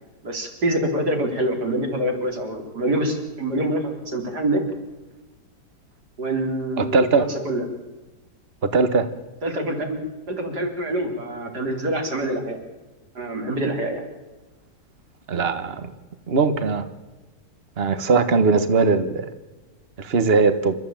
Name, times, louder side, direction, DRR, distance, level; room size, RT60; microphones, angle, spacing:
voice 1, 0.2-4.6 6.2-7.6 9.4-10.0 10.3-12.6 13.1-14.0, right 1 dB, 75° right, 3 dB, 4.5 m, -25 dB
voice 2, 6.8-7.2 8.7-9.1 15.3-15.9 16.3-16.8 17.8-19.3 20.0-20.7, right 4 dB, 40° right, 10 dB, 1.6 m, -19 dB
28.0 x 14.0 x 9.1 m, 1.2 s
omnidirectional pair, 1.8 m